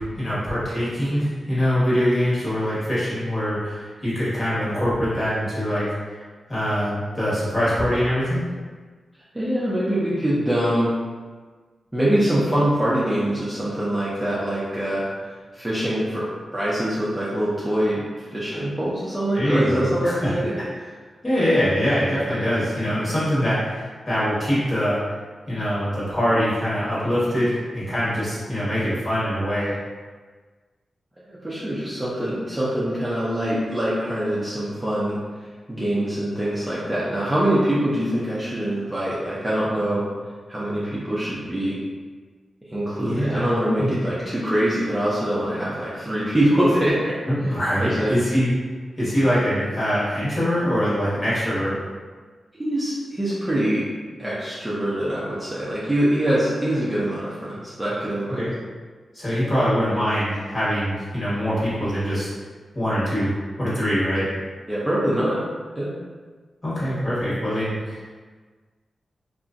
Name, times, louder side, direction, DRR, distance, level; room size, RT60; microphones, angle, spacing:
voice 1, 0.0-6.2 6.5-8.5 18.5-18.6 19.3-20.3 21.2-25.0 25.5-29.8 43.0-43.4 43.8-44.0 47.3-48.5 49.0-51.8 58.3-58.5 59.1-62.3 62.7-64.3 66.6-68.0, equal, 30° left, -10 dB, 1.2 m, -23 dB
voice 2, 9.3-10.9 11.9-15.0 15.5-20.9 31.4-40.0 40.5-41.8 42.7-47.2 47.4-47.5 47.8-48.1 52.6-53.9 54.2-58.4 64.7-65.4 65.8-65.9, right 1 dB, 10° right, -9 dB, 0.5 m, -24 dB
2.8 x 2.5 x 2.5 m, 1.4 s
wide cardioid pair, 125°, 0 cm